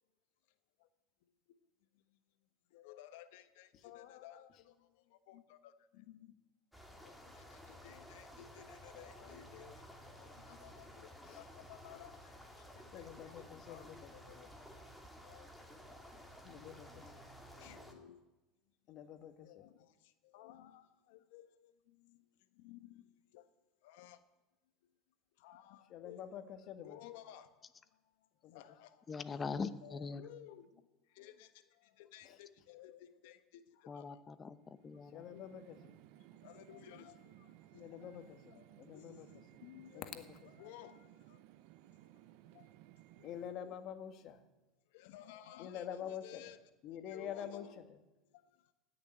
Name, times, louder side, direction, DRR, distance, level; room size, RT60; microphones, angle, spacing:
voice 1, 2.7-4.5 5.3-6.3 7.2-7.6 7.8-9.7 10.2-12.2 12.9-13.3 13.7-13.8 14.1-14.4 15.2-15.5 17.6-18.2 19.4-19.8 20.3-21.5 22.6-23.0 23.3-23.4 23.8-24.2 25.4-26.2 26.8-27.5 28.5-29.0 29.8-30.7 31.2-31.5 32.0-33.4 33.8-34.0 35.3-35.5 36.4-37.1 38.0-38.1 38.5-38.6 38.9-40.0 40.6-40.9 42.5-42.6 43.5-43.8 44.9-46.6 47.1-47.7, left 12 dB, 75° left, 10 dB, 1.3 m, -55 dB
sound 1, 6.7-17.9, equal, ahead, 2.5 m, -54 dB
voice 2, 11.2-11.8 12.9-14.5 16.4-17.3 18.9-19.7 24.1-24.2 25.9-27.4 28.4-28.6 30.3-30.4 32.2-32.4 35.1-35.9 37.7-39.3 39.9-40.9 43.2-44.4 45.3-46.6 46.8-48.0, left 9 dB, 50° left, 8 dB, 1.6 m, -48 dB
voice 3, 29.1-30.3 33.9-35.6 35.9-36.4, left 5 dB, 25° left, 13 dB, 0.9 m, -43 dB
sound 2, 34.5-43.5, right 15 dB, 65° right, 0.5 m, -60 dB
17.5 x 6.8 x 9.9 m, 1.1 s
supercardioid pair, 115°, 0 cm